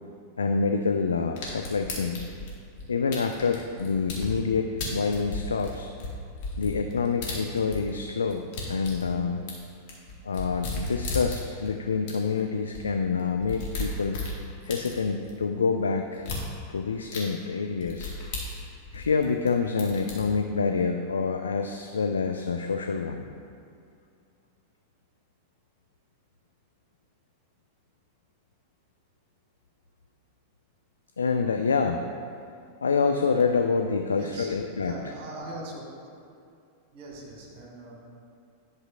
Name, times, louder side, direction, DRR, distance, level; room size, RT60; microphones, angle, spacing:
voice 1, 0.4-2.3 2.9-5.9 6.6-9.5 10.2-14.2 14.6-16.3 16.7-18.1 18.9-23.3 31.2-32.0 32.8-34.9, left 5 dB, 70° left, 5 dB, 0.3 m, -27 dB
sound 1, 1.4-4.3 4.8-8.0 8.3-11.7 12.1-12.2 12.4-12.5 12.7-12.8 13.2-15.3 16.2-16.4 17.1-17.2 17.8-19.5 19.8-20.2, left 3 dB, 45° left, 1.6 m, -35 dB
voice 2, 33.5-33.8 34.1-35.9 36.9-38.0, right 1 dB, 45° right, -2 dB, 1.8 m, -41 dB
10.5 x 6.2 x 2.4 m, 2.4 s
figure-of-eight pair, 90°, 0 cm